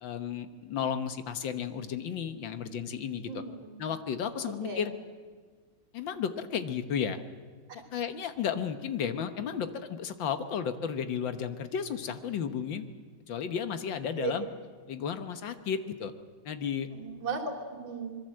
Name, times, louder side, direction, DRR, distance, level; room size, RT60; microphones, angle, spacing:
voice 1, 0.0-3.3 3.8-4.9 5.9-7.2 7.9-12.8 13.3-14.5 14.9-16.1 16.5-16.9, left 7 dB, 75° left, 9 dB, 1.9 m, -33 dB
voice 2, 3.3-3.7 4.6-4.9 7.7-7.8 14.2-14.3 16.9-18.2, right 4 dB, 75° right, 3 dB, 3.8 m, -36 dB
25.5 x 22.5 x 7.7 m, 1.5 s
omnidirectional pair, 2.1 m